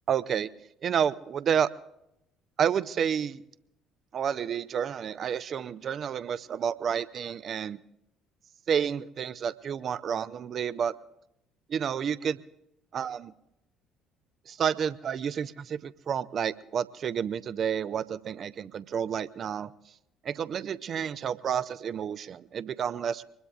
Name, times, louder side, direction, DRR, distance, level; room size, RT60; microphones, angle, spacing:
voice 1, 0.1-0.5 0.8-1.7 2.6-3.4 4.1-7.8 8.7-10.9 11.7-12.4 12.9-13.3 14.5-19.7 20.2-23.2, right 8 dB, 45° right, 16 dB, 0.5 m, -30 dB
24.5 x 20.5 x 2.4 m, 0.82 s
figure-of-eight pair, 50°, 0 cm